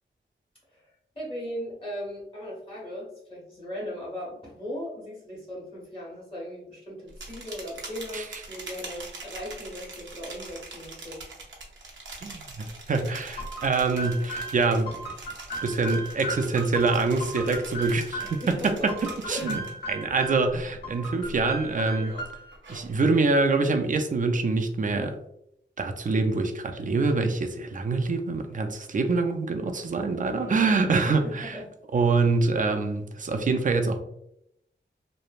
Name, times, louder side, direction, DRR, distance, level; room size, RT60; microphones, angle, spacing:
voice 1, 0.7-11.3 18.2-18.9 19.3-19.6 30.4-30.7 31.0-31.6, equal, 30° left, -5 dB, 1.4 m, -38 dB
sound 1, 7.1-20.0 20.4-20.8 21.2-23.1, right 2 dB, 80° right, 0.7 m, -43 dB
voice 2, 12.2-15.0 15.6-18.9 19.3-19.6 19.9-22.2 22.7-25.2 25.8-31.6 31.9-34.0, right 3 dB, 45° right, 6 dB, 0.4 m, -25 dB
sound 2, 13.4-18.4 18.9-20.5 20.8-22.6, right 1 dB, 60° left, 1.0 m, -36 dB
3.1 x 2.1 x 2.4 m, 0.77 s
wide cardioid pair, 90°, 19 cm